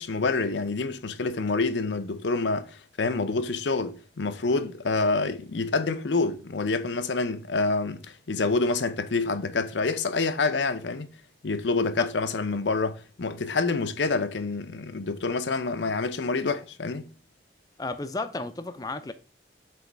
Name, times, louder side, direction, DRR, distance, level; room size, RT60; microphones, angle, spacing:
voice 1, 0.0-11.1 11.4-17.0, left 3 dB, 90° left, 0.7 m, -27 dB
voice 2, 17.8-19.1, left 3 dB, 20° left, 0.4 m, -33 dB
7.8 x 3.2 x 4.5 m
head